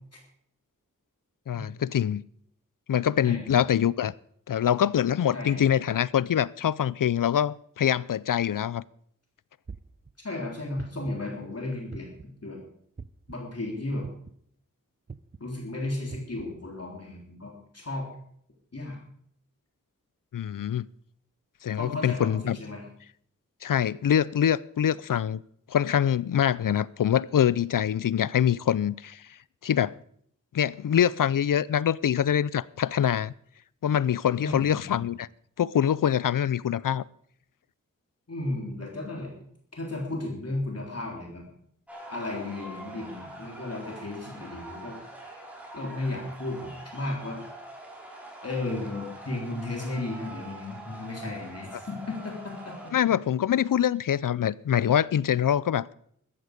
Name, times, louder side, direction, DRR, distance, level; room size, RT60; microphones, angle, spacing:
voice 1, 1.5-2.2 2.9-4.1 4.5-8.8 20.3-20.9 21.6-22.6 23.6-25.4 25.7-29.2 29.6-30.0 30.5-33.3 33.8-35.3 35.6-37.0 52.9-55.9, left 9 dB, 85° left, 0.5 m, -24 dB
voice 2, 5.3-5.6 10.2-12.6 13.3-14.1 15.4-18.1 18.7-19.0 21.8-22.8 34.4-35.0 38.3-39.3 39.8-41.5 42.1-45.0 45.7-47.4 48.4-52.9, left 2 dB, 50° left, 3.7 m, -34 dB
sound 1, 9.7-10.1 10.8-11.2 11.9-12.4 13.0-13.3 14.0-14.4 15.1-15.4 16.1-16.4, right 4 dB, 30° right, 0.6 m, -42 dB
sound 2, 41.9-52.9, right 1 dB, 5° right, 5.0 m, -44 dB
15.0 x 13.0 x 5.2 m
wide cardioid pair, 85°, 32 cm